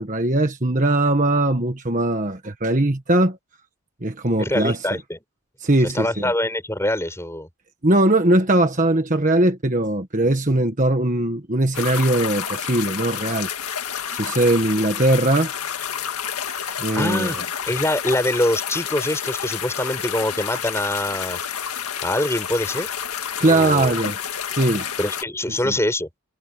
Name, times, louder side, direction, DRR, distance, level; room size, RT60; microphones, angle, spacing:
voice 1, 0.0-3.4 4.0-4.8 5.6-6.3 7.8-13.5 14.1-15.5 16.8-17.4 23.4-24.2 24.5-24.8 25.6-25.7, right 1 dB, 35° right, 1.5 m, -20 dB
voice 2, 4.4-5.2 5.8-7.5 10.2-10.3 16.6-17.4 17.7-21.4 22.0-22.9 23.4-24.0 25.0-26.1, left 1 dB, 10° left, 6.8 m, -24 dB
sound 1, 11.7-25.2, left 8 dB, 90° left, 1.9 m, -29 dB
head